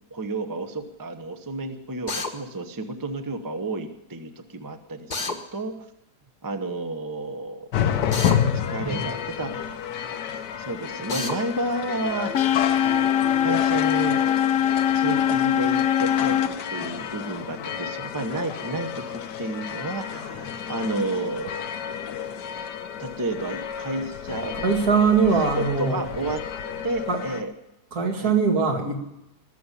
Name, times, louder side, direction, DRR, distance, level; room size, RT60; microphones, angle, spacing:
voice 1, 0.1-5.7 6.4-7.7 8.7-9.8 10.6-12.3 13.4-14.2 14.9-21.5 23.0-24.6 25.6-26.4 26.8-27.5 28.1-28.3, right 2 dB, 15° right, 6 dB, 0.7 m, -31 dB
Drill, 2.1-2.3 5.1-5.4 8.1-8.4 11.1-11.4, left 3 dB, 30° left, 1.1 m, -29 dB
sound 1, 7.7-27.4, left 8 dB, 85° left, 1.5 m, -31 dB
sound 2, 12.3-16.5, left 10 dB, 65° left, 1.1 m, -22 dB
voice 2, 24.5-26.0 27.1-27.2 27.9-29.0, right 5 dB, 65° right, 1 dB, 2.7 m, -22 dB
20.0 x 7.0 x 9.9 m, 0.90 s
omnidirectional pair, 1.8 m